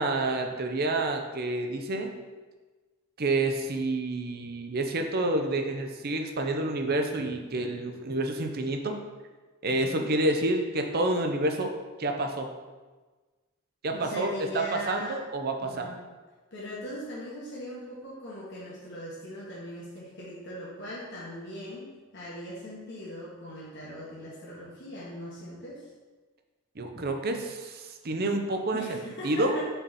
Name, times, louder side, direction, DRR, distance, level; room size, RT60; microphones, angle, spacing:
voice 1, 0.0-2.1 3.2-9.0 9.6-11.7 12.0-12.5 13.8-15.9 26.8-29.0 29.2-29.6, right 2 dB, 45° right, 4 dB, 0.6 m, -28 dB
voice 2, 9.7-10.1 13.9-15.2 15.6-16.0 16.5-25.9 28.7-29.6, left 1 dB, 55° left, -7 dB, 1.3 m, -40 dB
5.6 x 4.2 x 4.1 m, 1.3 s
head